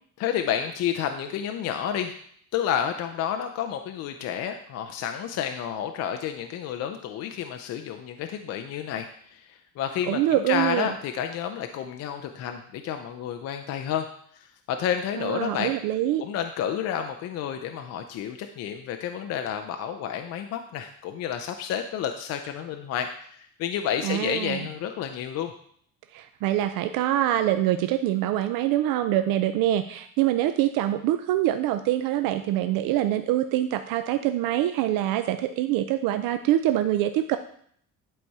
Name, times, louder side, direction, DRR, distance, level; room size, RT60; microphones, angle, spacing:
voice 1, 0.2-2.2 2.5-10.2 10.5-14.1 14.3-15.7 16.2-25.5, left 9 dB, 50° left, 7 dB, 0.5 m, -30 dB
voice 2, 10.1-10.9 15.2-16.3 24.0-24.6 26.1-37.4, right 13 dB, 75° right, 9 dB, 0.5 m, -25 dB
10.5 x 4.2 x 4.7 m, 0.63 s
cardioid pair, 175°, 34 cm